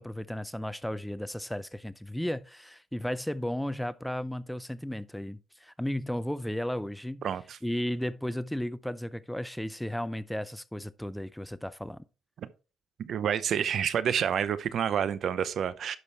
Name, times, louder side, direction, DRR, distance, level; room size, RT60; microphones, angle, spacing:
voice 1, 0.0-7.3 7.6-12.0, left 1 dB, 5° left, 0.5 m, -34 dB
voice 2, 7.2-7.6 12.4-12.5 13.0-16.0, right 8 dB, 65° right, 0.7 m, -29 dB
11.0 x 6.1 x 3.4 m
cardioid pair, 90°, 0 cm